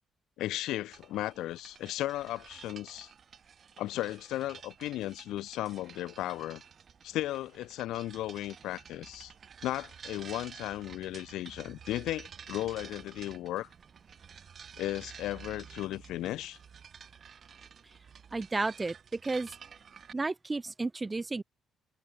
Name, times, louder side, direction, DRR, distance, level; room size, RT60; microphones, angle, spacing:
voice 1, 0.4-3.1 3.8-6.6 7.0-9.3 9.6-13.7 14.8-16.6, left 15 dB, 90° left, 0.9 m, -35 dB
sound 1, 0.9-20.1, right 7 dB, 50° right, 2.1 m, -51 dB
voice 2, 18.3-19.6 20.1-21.4, right 3 dB, 20° right, 0.8 m, -32 dB
cardioid pair, 90°, 0 cm